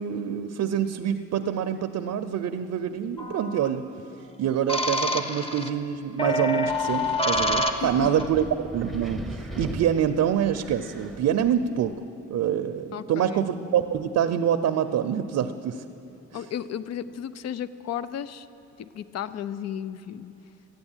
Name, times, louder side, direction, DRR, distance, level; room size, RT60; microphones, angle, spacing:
voice 1, 0.0-3.8 4.4-8.4 8.7-12.0 12.3-15.8, right 9 dB, 65° right, 8 dB, 0.6 m, -26 dB
sound 1, 3.2-3.7 4.7-5.7 6.2-8.2, left 1 dB, 20° left, 1.1 m, -27 dB
Wind, 6.7-11.9, right 1 dB, ahead, 0.8 m, -40 dB
voice 2, 7.8-8.3 12.9-13.4 16.3-18.5 18.8-20.3, left 9 dB, 55° left, 15 dB, 0.6 m, -34 dB
14.0 x 9.3 x 8.9 m, 3.0 s
cardioid pair, 90°, 30 cm